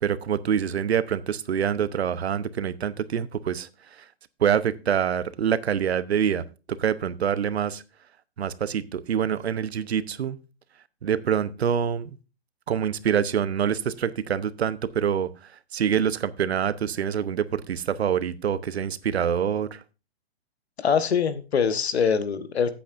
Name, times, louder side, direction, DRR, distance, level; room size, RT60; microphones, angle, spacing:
voice 1, 0.0-3.7 4.4-7.8 8.4-10.4 11.0-12.2 12.7-15.3 15.7-19.8, right 8 dB, 80° right, 15 dB, 0.8 m, -25 dB
voice 2, 20.8-22.7, left 6 dB, 80° left, 11 dB, 1.2 m, -23 dB
14.0 x 8.4 x 2.5 m, 0.32 s
hypercardioid pair, 180°, 32 cm